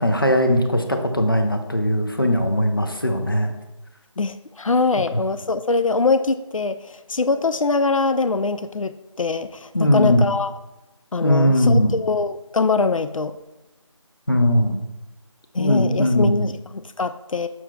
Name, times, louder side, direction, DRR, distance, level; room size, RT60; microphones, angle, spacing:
voice 1, 0.0-3.5 5.1-5.2 9.7-10.3 11.2-12.0 14.3-14.8 15.6-16.5, equal, 45° left, 5 dB, 0.7 m, -19 dB
voice 2, 4.2-10.5 11.1-13.4 15.5-17.5, left 4 dB, 90° left, 11 dB, 0.4 m, -23 dB
7.1 x 6.0 x 2.3 m, 0.99 s
figure-of-eight pair, 175°, 17 cm